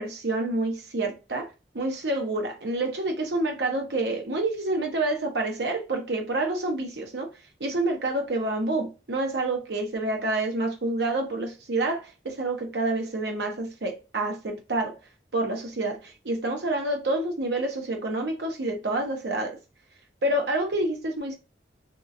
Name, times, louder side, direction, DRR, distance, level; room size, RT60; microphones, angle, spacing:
voice 1, 0.0-7.3 7.6-14.9 15.3-19.6 20.2-21.4, right 2 dB, 70° right, 0.8 m, -28 dB
2.7 x 2.4 x 2.6 m
head